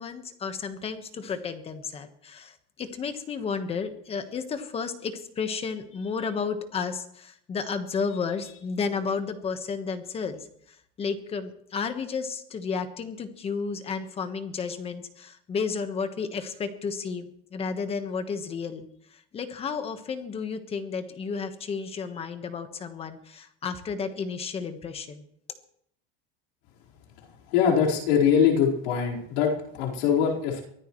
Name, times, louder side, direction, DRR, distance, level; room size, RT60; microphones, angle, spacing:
voice 1, 0.0-25.2, left 5 dB, 20° left, 8 dB, 1.3 m, -32 dB
voice 2, 27.5-30.6, left 7 dB, 85° left, -3 dB, 4.5 m, -23 dB
23.5 x 16.0 x 3.2 m, 0.70 s
cardioid pair, 170°, 30 cm